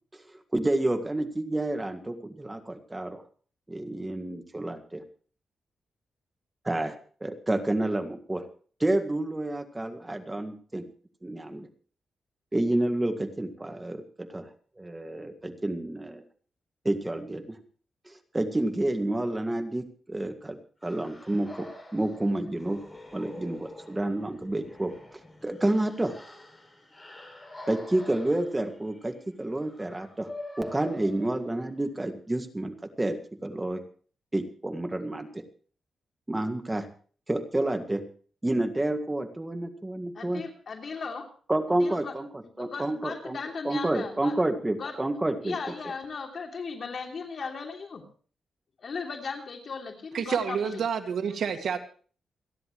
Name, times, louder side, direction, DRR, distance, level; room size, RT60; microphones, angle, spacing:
voice 1, 0.5-3.2 3.7-5.0 6.7-8.4 8.8-10.9 11.2-11.7 12.5-14.5 14.8-16.2 16.9-17.6 18.1-21.7 21.9-22.8 23.1-24.9 25.4-26.1 27.7-30.3 30.6-33.8 34.3-35.4 36.3-36.9 37.3-38.0 38.4-40.4 41.5-42.3 42.6-43.4 43.6-45.6, right 1 dB, 15° right, 6 dB, 1.9 m, -29 dB
sound 1, 20.8-31.9, left 1 dB, 15° left, 6.6 m, -46 dB
voice 2, 40.1-41.3 41.7-42.1 42.6-44.3 44.7-45.0 45.4-48.0 48.8-50.8, left 5 dB, 50° left, 2 dB, 3.1 m, -37 dB
voice 3, 50.1-51.8, right 7 dB, 70° right, 5 dB, 2.0 m, -28 dB
28.5 x 11.0 x 3.1 m, 0.42 s
cardioid pair, 105°, 0 cm